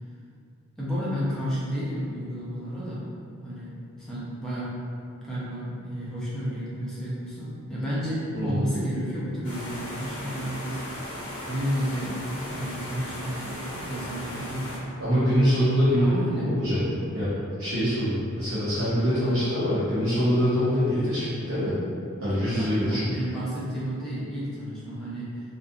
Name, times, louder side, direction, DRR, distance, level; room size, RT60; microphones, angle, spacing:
voice 1, 0.8-3.0 3.4-4.7 5.2-11.2 11.4-12.2 12.5-14.8 15.9-16.5 19.2-19.4 22.4-25.4, equal, 5° left, -10 dB, 0.6 m, -32 dB
sound 1, 9.4-14.8, equal, 80° left, 0.7 m, -36 dB
voice 2, 15.0-17.3 17.6-21.8 22.2-23.1, equal, 80° right, -12 dB, 0.7 m, -24 dB
2.4 x 2.3 x 2.6 m, 2.4 s
head